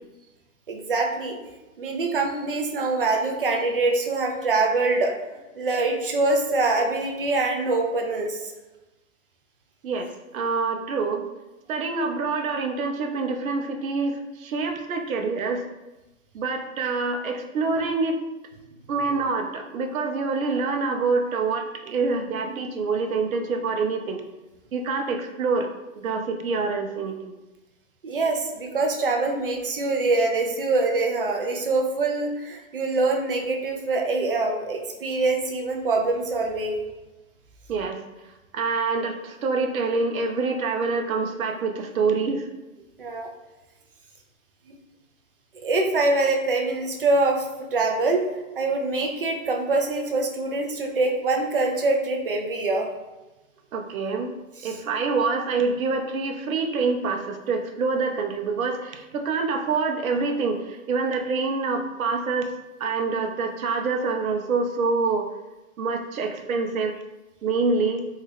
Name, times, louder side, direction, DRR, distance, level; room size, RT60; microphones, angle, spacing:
voice 1, 0.7-1.4 1.8-5.1 5.6-8.5 28.0-36.8 43.0-43.3 45.6-47.5 47.7-48.2 48.6-52.9 54.6-54.7, right 3 dB, 45° right, 2 dB, 0.4 m, -24 dB
voice 2, 9.8-11.2 11.7-15.6 16.3-18.2 18.9-24.2 24.7-25.7 25.9-27.3 37.7-38.0 38.5-42.4 53.7-54.3 54.6-62.5 62.8-65.3 65.8-66.9 67.4-68.0, right 4 dB, 85° right, 4 dB, 0.6 m, -26 dB
2.7 x 2.3 x 3.3 m, 1.1 s
hypercardioid pair, 165°, 41 cm